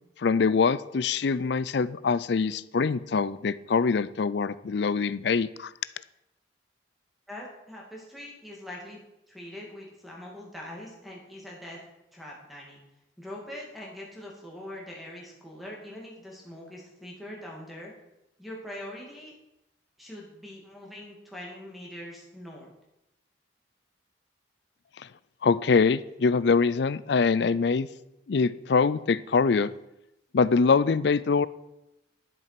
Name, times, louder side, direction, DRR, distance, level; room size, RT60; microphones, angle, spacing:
voice 1, 0.2-5.7 25.0-25.1 25.4-27.9 28.3-29.7 30.3-31.5, left 5 dB, 60° left, 17 dB, 0.4 m, -24 dB
voice 2, 7.3-9.0 9.3-11.8 12.1-12.8 13.2-17.9 18.4-19.3 20.0-22.7, left 1 dB, ahead, -3 dB, 2.4 m, -42 dB
11.0 x 7.6 x 5.9 m, 0.89 s
head